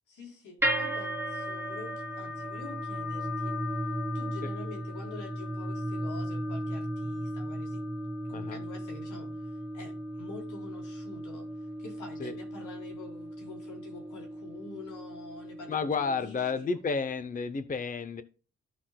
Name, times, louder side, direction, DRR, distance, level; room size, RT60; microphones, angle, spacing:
voice 1, 0.1-7.8 8.3-16.7, left 3 dB, 90° left, 0 dB, 3.9 m, -47 dB
sound 1, 0.6-16.8, equal, 10° right, 2.4 m, -36 dB
voice 2, 15.7-18.2, left 5 dB, 30° left, 11 dB, 0.7 m, -31 dB
14.0 x 5.9 x 2.3 m, 0.36 s
cardioid pair, 110°, 30 cm